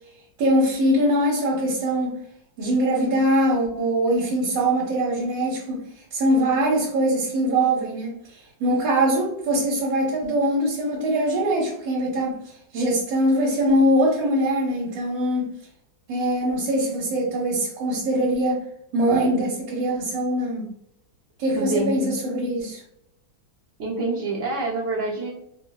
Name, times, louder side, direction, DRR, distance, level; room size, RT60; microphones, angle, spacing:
voice 1, 0.4-2.2 2.6-5.8 6.1-15.5 16.1-18.6 18.9-20.7 21.4-22.8, right 1 dB, 85° right, -3 dB, 1.4 m, -22 dB
voice 2, 21.5-22.1 23.8-25.3, right 2 dB, 55° right, -4 dB, 0.9 m, -26 dB
4.4 x 2.1 x 2.2 m, 0.76 s
omnidirectional pair, 2.1 m